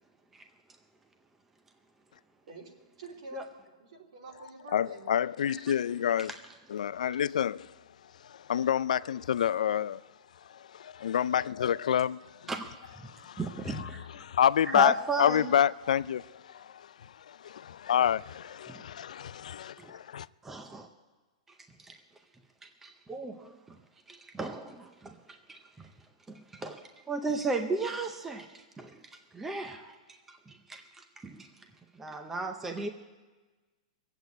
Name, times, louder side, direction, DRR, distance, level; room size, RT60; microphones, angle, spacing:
voice 1, 3.0-5.2, right 3 dB, 65° right, 3.3 m, -47 dB
voice 2, 4.7-6.3 6.7-7.7 8.2-10.0 10.5-12.5 13.0-20.3, left 9 dB, 80° left, 0.4 m, -28 dB
voice 3, 13.4-14.1 14.7-15.5 18.7-18.8 19.8-19.9 20.4-20.9 21.8-21.9 22.6-23.6 24.1-25.9 26.3-29.0 29.3-31.5 32.0-32.9, right 3 dB, 5° right, 0.5 m, -35 dB
19.0 x 8.0 x 8.2 m
hypercardioid pair, 170°, 4 cm